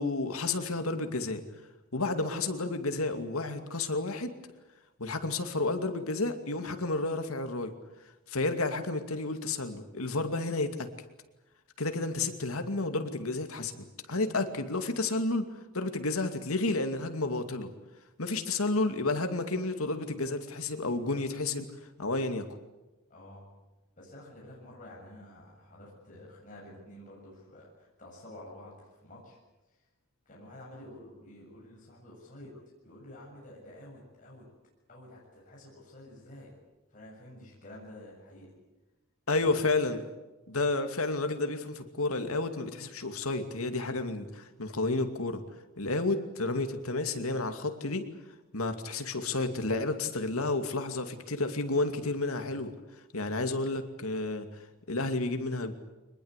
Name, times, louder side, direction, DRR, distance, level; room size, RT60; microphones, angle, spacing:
voice 1, 0.0-1.4 1.9-4.3 5.0-7.7 8.3-10.9 11.8-15.5 15.7-17.7 18.2-21.7 22.0-22.5 39.3-40.1 40.5-45.4 45.8-48.1 48.5-52.7 53.1-54.5 54.9-55.7, left 2 dB, 90° left, 7 dB, 2.5 m, -31 dB
voice 2, 23.1-23.6 24.0-29.4 29.7-29.8 30.3-32.5 32.8-34.5 34.9-36.5 36.9-38.5 39.3-39.7, left 1 dB, 40° left, -4 dB, 7.5 m, -50 dB
24.0 x 21.0 x 8.3 m, 1.1 s
head